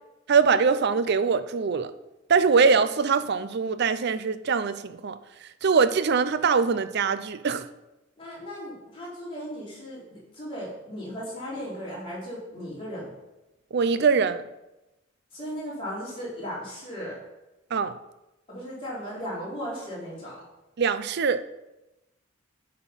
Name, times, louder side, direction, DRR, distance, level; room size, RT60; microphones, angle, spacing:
voice 1, 0.3-1.9 2.3-5.2 5.6-7.7 13.7-14.4 17.7-17.9 20.8-21.4, right 5 dB, 55° right, 0.5 m, -23 dB
voice 2, 8.2-13.1 15.3-17.2 18.5-20.4, equal, 25° left, 3.6 m, -36 dB
10.5 x 4.4 x 5.6 m
head